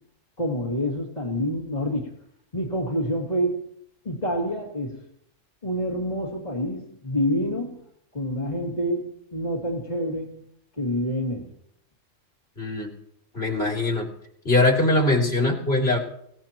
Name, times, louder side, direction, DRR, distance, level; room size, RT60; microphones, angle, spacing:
voice 1, 0.4-2.1 2.5-3.7 4.0-5.1 5.6-7.8 8.1-10.4 10.8-11.5, equal, 30° left, -3 dB, 2.7 m, -27 dB
voice 2, 12.6-12.9 13.3-14.1 14.5-16.0, left 2 dB, 50° left, -1 dB, 3.6 m, -21 dB
25.5 x 17.5 x 3.0 m, 0.73 s
omnidirectional pair, 1.3 m